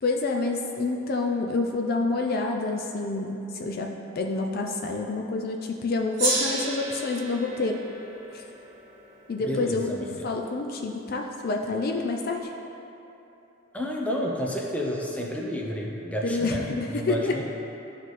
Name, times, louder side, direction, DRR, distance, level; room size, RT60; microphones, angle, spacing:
voice 1, 0.0-7.8 8.3-8.4 9.3-12.5 16.2-17.4, left 3 dB, 50° left, 2 dB, 0.4 m, -28 dB
Gong, 6.2-10.9, right 2 dB, 40° right, 1.6 m, -33 dB
voice 2, 9.5-10.3 13.7-17.4, equal, 5° left, -2 dB, 0.6 m, -30 dB
12.0 x 4.0 x 3.2 m, 3.0 s
head